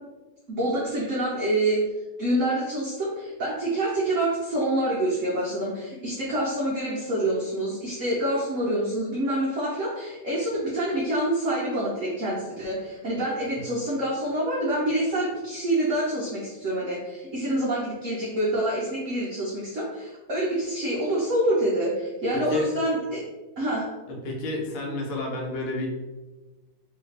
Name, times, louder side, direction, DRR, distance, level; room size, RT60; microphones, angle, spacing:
voice 1, 0.5-1.8 2.2-23.2 23.6-23.9, right 1 dB, 70° right, -6 dB, 0.7 m, -26 dB
voice 2, 22.3-22.7 24.1-25.9, left 2 dB, 85° left, -1 dB, 1.6 m, -30 dB
3.1 x 2.8 x 3.3 m, 1.2 s
omnidirectional pair, 2.3 m